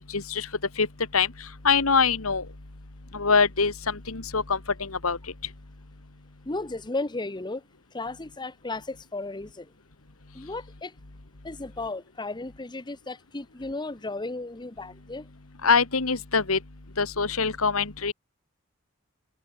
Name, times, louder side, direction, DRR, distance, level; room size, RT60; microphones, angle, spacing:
voice 1, 0.1-0.5 0.8-0.9 1.1-1.3 1.6-2.4 3.1-5.2 15.6-16.6 17.0-18.1, left 5 dB, 85° left, 1.8 m, -24 dB
voice 2, 6.4-7.6 7.9-9.7 10.3-10.9 11.4-15.3, left 2 dB, 20° left, 0.9 m, -34 dB
head